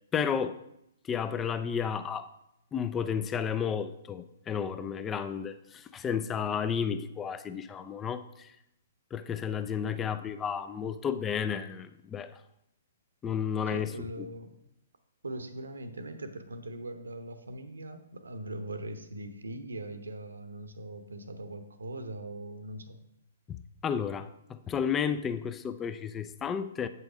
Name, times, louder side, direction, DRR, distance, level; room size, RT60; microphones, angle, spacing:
voice 1, 0.1-0.6 1.0-2.3 2.7-8.5 9.1-12.4 13.2-13.9 14.2-14.3 23.5-26.9, left 7 dB, 15° left, 11 dB, 0.4 m, -32 dB
voice 2, 13.7-14.5 15.2-23.0, right 1 dB, 75° right, 9 dB, 0.9 m, -41 dB
7.9 x 5.7 x 5.0 m, 0.81 s
figure-of-eight pair, 120°, 0 cm